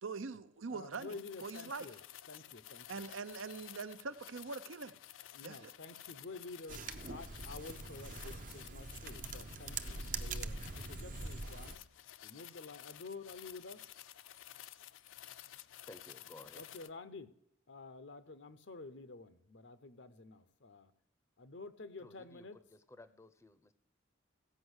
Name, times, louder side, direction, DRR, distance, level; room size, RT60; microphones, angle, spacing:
voice 1, 0.0-1.9 2.9-4.9 5.4-5.7, right 4 dB, 85° right, 12 dB, 0.7 m, -43 dB
voice 2, 0.7-3.1 5.3-11.8 12.2-13.9 16.5-17.3 17.7-20.9 21.4-22.6, left 3 dB, 65° left, 12 dB, 0.8 m, -50 dB
sound 1, 0.9-16.9, left 13 dB, 80° left, 0.4 m, -53 dB
sound 2, 6.7-11.8, right 4 dB, 40° right, 0.6 m, -43 dB
voice 3, 15.9-16.6 22.0-23.7, left 2 dB, 15° left, 12 dB, 0.6 m, -56 dB
15.5 x 5.5 x 8.0 m, 0.72 s
head